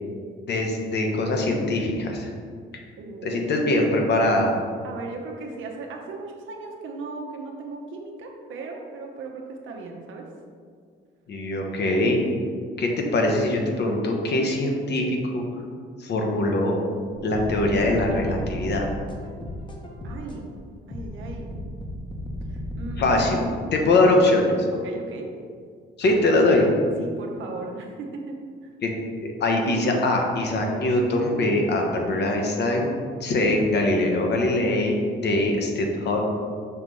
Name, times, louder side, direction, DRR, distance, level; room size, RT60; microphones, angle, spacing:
voice 1, 0.5-2.3 3.2-4.5 11.3-12.2 12.8-15.4 16.0-16.8 17.2-18.9 23.0-23.4 23.7-24.6 26.0-26.7 28.8-28.9 29.2-32.9 33.2-36.2, left 2 dB, 60° left, 1 dB, 1.1 m, -22 dB
voice 2, 3.0-3.5 4.8-10.2 20.0-20.5 20.9-21.5 22.5-23.7 24.0-24.2 24.7-25.3 27.0-28.7, right 3 dB, 75° right, 1 dB, 0.9 m, -37 dB
sound 1, 17.3-20.4 20.9-23.3, left 1 dB, 25° left, 1.0 m, -34 dB
5.8 x 3.1 x 5.3 m, 2.1 s
cardioid pair, 90°, 20 cm